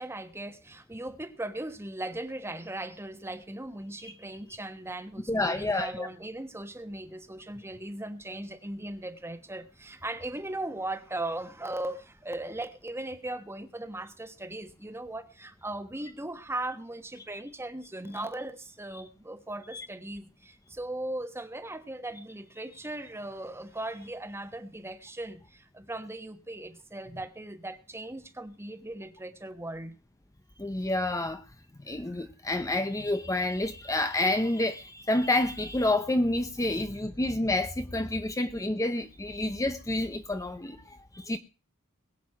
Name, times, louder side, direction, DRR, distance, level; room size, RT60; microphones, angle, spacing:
voice 1, 0.0-29.9 30.8-30.9 32.1-32.2, right 1 dB, 10° right, 1.3 m, -38 dB
voice 2, 5.3-6.1 18.1-18.2 19.7-19.9 30.6-31.4 31.9-41.4, left 2 dB, 15° left, 0.7 m, -29 dB
21.5 x 8.3 x 4.8 m
head